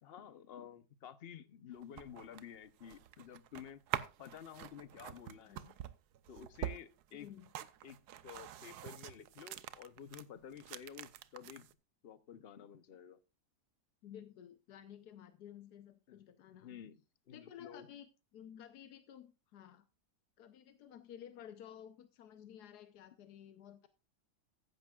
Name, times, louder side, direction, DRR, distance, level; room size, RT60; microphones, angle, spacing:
voice 1, 0.0-3.8 4.2-5.6 6.3-7.3 7.8-8.0 8.2-11.7 12.0-13.2 16.1-16.2 16.6-17.0 17.3-17.9, left 8 dB, 45° left, 14 dB, 0.9 m, -51 dB
sound 1, 1.7-10.2 10.5-11.7, right 11 dB, 90° right, 1.3 m, -45 dB
voice 2, 7.1-7.5 14.0-16.8 17.3-19.8 20.4-23.9, left 10 dB, 85° left, 10 dB, 1.4 m, -54 dB
15.0 x 10.5 x 2.4 m, 0.27 s
omnidirectional pair, 1.7 m